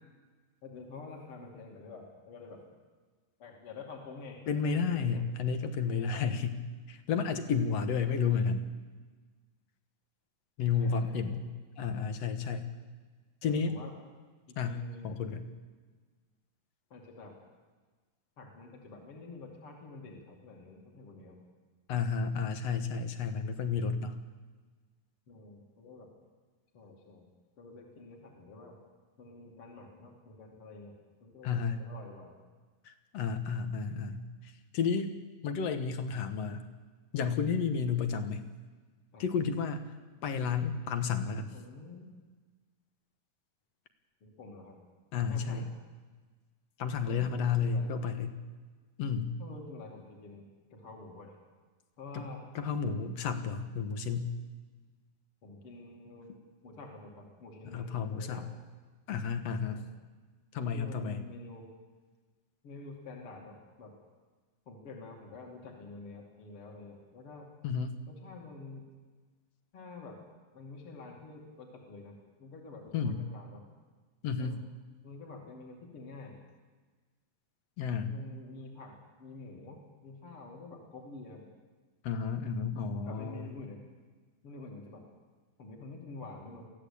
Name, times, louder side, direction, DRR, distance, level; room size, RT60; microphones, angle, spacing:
voice 1, 0.6-2.6 3.4-5.3 10.8-11.4 13.4-13.9 14.5-15.1 16.9-17.4 18.4-21.4 25.3-26.1 26.7-27.3 27.6-28.8 29.2-32.3 39.1-39.4 41.5-42.1 44.2-44.8 45.3-45.7 47.1-48.0 49.4-51.4 52.0-52.4 55.4-56.3 56.6-58.5 59.6-59.9 60.7-61.7 62.6-63.9 64.7-67.5 68.1-68.9 69.7-70.2 70.5-73.6 74.4-74.6 75.0-76.4 78.1-81.4 83.0-83.8 84.4-85.1 85.6-86.7, left 3 dB, 45° left, 0 dB, 3.2 m, -48 dB
voice 2, 4.5-6.6 6.9-8.7 10.6-11.5 11.8-12.6 13.4-13.7 14.6-14.8 15.0-15.5 21.9-24.1 31.4-31.8 32.9-34.2 34.7-35.1 35.4-36.6 37.1-38.5 39.2-39.8 40.2-41.5 45.1-45.7 46.8-48.4 49.0-49.3 52.1-52.2 52.6-54.3 57.7-58.5 59.1-59.8 60.5-61.2 67.6-67.9 72.9-73.2 74.2-74.6 77.8-78.1 82.0-83.4, left 6 dB, 60° left, 9 dB, 2.2 m, -31 dB
23.0 x 15.5 x 8.6 m, 1.4 s
omnidirectional pair, 3.9 m